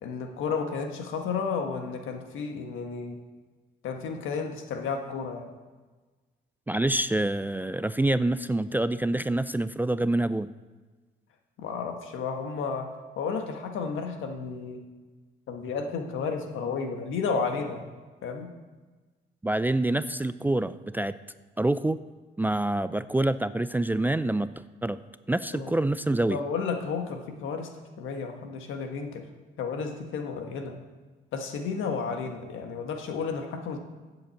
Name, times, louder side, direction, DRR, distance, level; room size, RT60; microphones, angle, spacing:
voice 1, 0.0-3.2 3.8-5.5 11.6-12.9 13.2-14.8 15.5-17.9 18.2-18.5 25.5-25.7 26.3-27.7 28.0-29.3 29.6-30.8 31.3-33.8, left 5 dB, 80° left, 4 dB, 1.5 m, -32 dB
voice 2, 6.7-10.5 19.4-21.1 21.6-22.0 22.4-24.5 24.8-25.0 25.3-26.4, right 1 dB, 10° right, 13 dB, 0.3 m, -26 dB
7.6 x 7.3 x 7.7 m, 1.3 s
cardioid pair, 90°, 20 cm